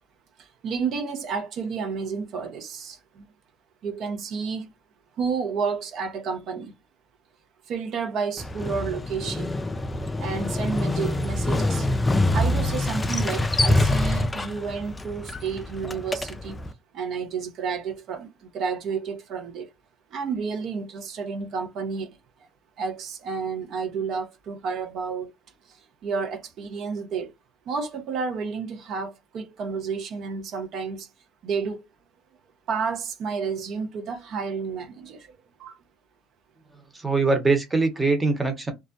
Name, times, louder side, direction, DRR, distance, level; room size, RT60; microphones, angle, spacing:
voice 1, 0.4-3.2 3.8-4.7 5.2-6.7 7.7-9.5 10.2-11.9 12.3-16.6 16.9-19.7 20.1-22.2 22.8-25.3 25.7-27.3 27.7-31.1 31.4-31.8 32.7-35.3 35.6-35.8, right 5 dB, 55° right, 0.7 m, -31 dB
Motorcycle, 8.4-16.7, left 2 dB, 15° left, 0.3 m, -25 dB
voice 2, 36.9-38.7, right 3 dB, 15° right, 0.9 m, -22 dB
2.3 x 2.0 x 2.6 m
hypercardioid pair, 75°, 0 cm